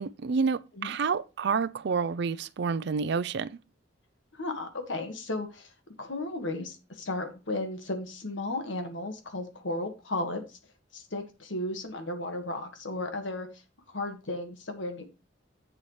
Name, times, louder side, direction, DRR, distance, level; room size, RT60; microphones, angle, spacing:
voice 1, 0.0-3.5, right 5 dB, 60° right, 0.4 m, -29 dB
voice 2, 4.3-5.7 6.0-10.6 10.9-13.6 13.9-15.0, left 2 dB, 80° left, 1.7 m, -34 dB
8.0 x 7.0 x 3.1 m
head